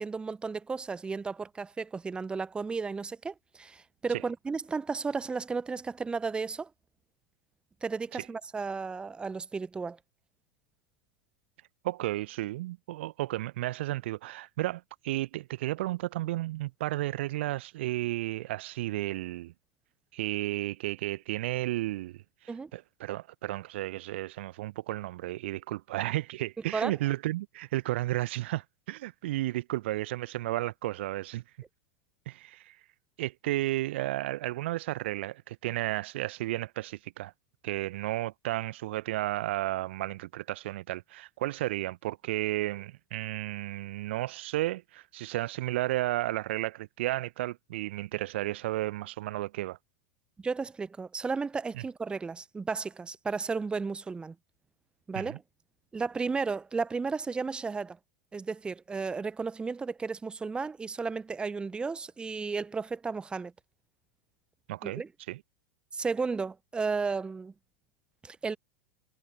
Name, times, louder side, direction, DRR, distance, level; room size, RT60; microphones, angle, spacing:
voice 1, 0.0-6.7 7.8-10.0 22.5-22.7 26.7-27.0 50.4-54.3 55.1-55.4 55.9-58.0 58.3-63.5 64.8-65.1 65.9-67.5 68.2-68.6, right 4 dB, 15° right, 0.9 m, -33 dB
voice 2, 11.8-19.5 20.1-22.2 22.7-31.4 32.3-32.7 33.2-37.3 37.6-49.8 55.2-55.4 64.7-65.0 65.3-65.4, right 16 dB, 55° right, 0.9 m, -33 dB
figure-of-eight pair, 85°, 7 cm